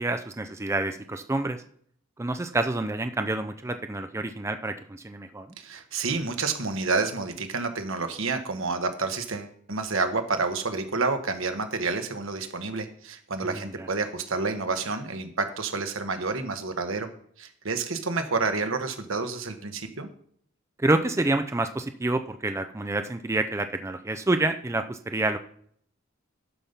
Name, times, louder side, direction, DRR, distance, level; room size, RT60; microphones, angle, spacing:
voice 1, 0.0-1.6 2.2-5.5 13.4-13.9 20.8-25.4, right 2 dB, 15° right, 8 dB, 0.4 m, -28 dB
voice 2, 5.6-17.1 17.4-20.1, right 4 dB, 80° right, 7 dB, 1.2 m, -29 dB
11.5 x 5.3 x 5.7 m, 0.62 s
head